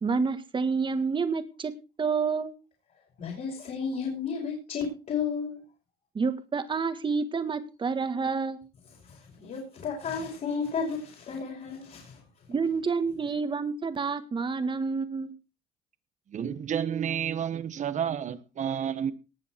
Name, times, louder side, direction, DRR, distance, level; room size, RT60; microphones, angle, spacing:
voice 1, 0.0-1.7 2.0-2.5 6.2-8.6 12.5-15.3, right 5 dB, 30° right, 1.7 m, -28 dB
voice 2, 3.2-5.6 9.0-12.2, left 6 dB, 55° left, 5.3 m, -33 dB
voice 3, 16.3-19.1, right 8 dB, 45° right, 1.2 m, -30 dB
19.0 x 6.9 x 4.4 m
cardioid pair, 110°, 17 cm